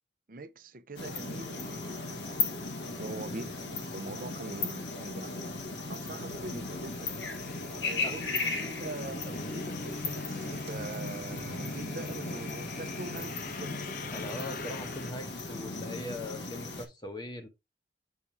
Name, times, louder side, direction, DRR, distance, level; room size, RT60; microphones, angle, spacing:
voice 1, 0.3-2.5 2.8-5.4 5.9-7.2 7.8-13.7, right 3 dB, 50° right, 0.6 m, -43 dB
sound 1, 1.0-16.9, left 3 dB, 80° left, 1.5 m, -36 dB
sound 2, 6.3-15.1, left 4 dB, 50° left, 0.4 m, -44 dB
sound 3, 9.2-14.4, right 3 dB, 85° right, 0.7 m, -50 dB
voice 2, 14.1-17.5, left 1 dB, 25° left, 1.0 m, -41 dB
7.2 x 2.8 x 4.7 m
head